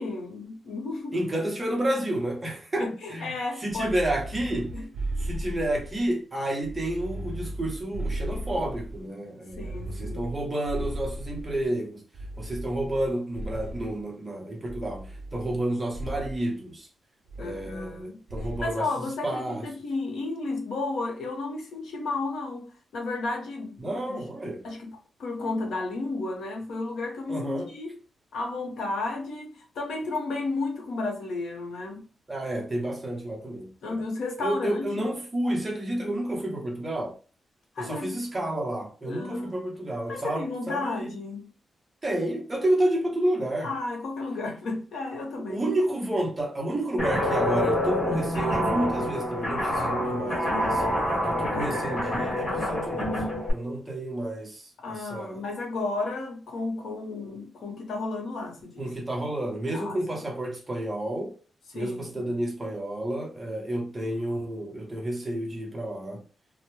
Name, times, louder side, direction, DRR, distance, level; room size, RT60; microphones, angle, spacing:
voice 1, 0.0-1.2 2.8-4.0 4.7-4.9 9.6-10.3 17.4-18.2 18.6-24.2 24.6-27.9 28.3-32.0 33.8-35.1 36.0-36.1 37.7-38.2 39.0-39.6 40.1-41.5 43.6-45.6 54.8-58.9 59.7-60.3 61.7-62.4, left 3 dB, 80° left, 0.8 m, -33 dB
voice 2, 1.1-4.7 5.2-12.0 12.4-16.9 17.4-19.7 23.8-24.6 27.3-27.7 32.3-34.0 34.4-37.1 37.8-41.1 42.0-43.7 45.5-53.1 53.5-55.4 58.8-61.3 61.7-66.2, right 1 dB, 20° right, 0.7 m, -30 dB
sound 1, 3.7-6.1 6.6-9.0 9.5-11.7 12.1-14.0 14.7-15.6 15.9-16.4 17.3-18.0 18.3-18.8, right 1 dB, 50° right, 0.4 m, -36 dB
Guitar, 47.0-53.5, left 1 dB, 45° left, 1.1 m, -27 dB
2.2 x 2.1 x 3.0 m
wide cardioid pair, 140°, 0 cm